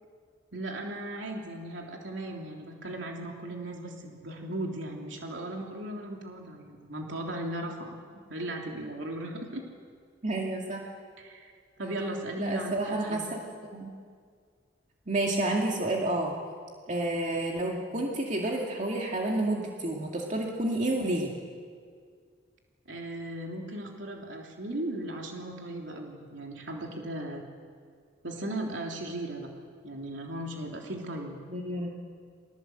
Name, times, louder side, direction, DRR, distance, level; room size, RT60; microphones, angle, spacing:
voice 1, 0.5-9.7 11.2-11.5 11.8-13.2 22.9-27.4 28.2-29.5 29.8-31.4, right 1 dB, 75° right, 0 dB, 3.2 m, -37 dB
voice 2, 10.2-10.9 12.4-13.4 13.7-13.9 15.1-16.3 16.9-21.3 31.5-31.9, right 1 dB, 40° right, -1 dB, 2.3 m, -30 dB
29.0 x 21.0 x 7.9 m, 2.1 s
head